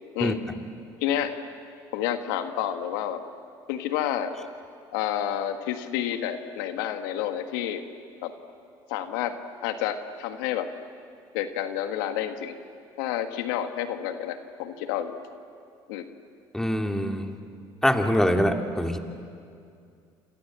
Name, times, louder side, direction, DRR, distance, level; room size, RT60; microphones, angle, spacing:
voice 1, 1.0-1.3 1.9-3.2 3.7-4.3 4.9-7.8 8.2-8.3 8.9-9.3 9.6-10.7 11.3-12.6 13.0-15.1 15.9-16.0, left 10 dB, 90° left, 7 dB, 1.7 m, -29 dB
voice 2, 16.5-17.3 17.8-19.0, equal, 5° left, 4 dB, 2.6 m, -24 dB
29.0 x 27.0 x 7.6 m, 2.4 s
supercardioid pair, 90°, 10 cm